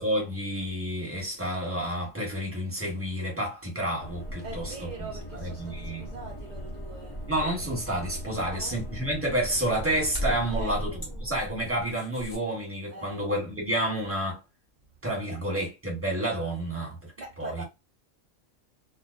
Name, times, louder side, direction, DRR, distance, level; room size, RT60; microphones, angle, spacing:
voice 1, 0.0-4.6 5.0-6.1 7.3-10.9 11.2-14.4 15.0-17.1 17.4-17.6, right 1 dB, 10° right, 1.0 m, -30 dB
sound 1, 4.0-12.4, equal, 35° left, 0.3 m, -37 dB
voice 2, 4.4-7.2 8.3-8.8 10.5-10.8 12.9-13.2 15.3-15.4 17.2-17.6, right 3 dB, 65° right, 0.4 m, -42 dB
2.3 x 2.2 x 2.4 m
omnidirectional pair, 1.4 m